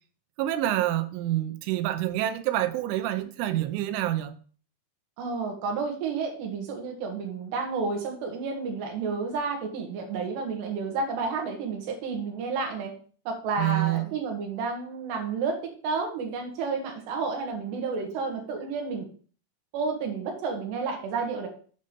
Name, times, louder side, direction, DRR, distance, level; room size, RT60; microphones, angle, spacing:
voice 1, 0.4-4.4 13.6-14.1, right 14 dB, 90° right, 3.2 m, -27 dB
voice 2, 5.2-12.9 13.3-19.1 19.7-21.5, right 4 dB, 70° right, 3.6 m, -31 dB
8.0 x 5.4 x 5.2 m
omnidirectional pair, 5.4 m